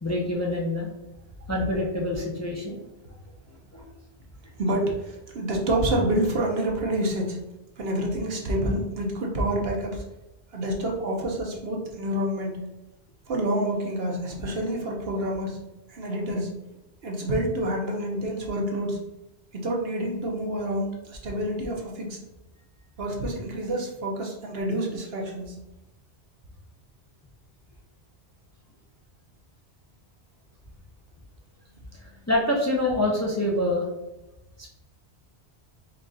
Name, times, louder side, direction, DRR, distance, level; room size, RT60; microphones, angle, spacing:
voice 1, 0.0-0.9 1.5-2.8 3.7-3.8 32.3-33.8 34.6-34.7, left 1 dB, 20° left, -3 dB, 0.6 m, -26 dB
voice 2, 4.6-7.4 7.8-10.0 10.5-12.7 13.3-16.5 17.0-19.0 19.5-22.2 23.0-25.6, right 1 dB, 65° right, 0 dB, 1.0 m, -28 dB
4.5 x 2.5 x 3.8 m, 0.96 s
omnidirectional pair, 1.1 m